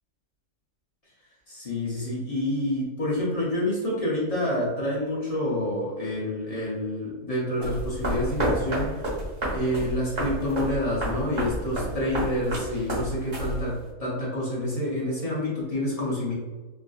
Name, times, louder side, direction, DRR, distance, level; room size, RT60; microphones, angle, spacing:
voice 1, 1.5-9.1 9.5-16.3, left 1 dB, 70° left, -6 dB, 0.3 m, -28 dB
sound 1, 7.6-13.9, right 1 dB, 45° right, 1.4 m, -30 dB
3.3 x 2.5 x 2.3 m, 1.3 s
omnidirectional pair, 1.7 m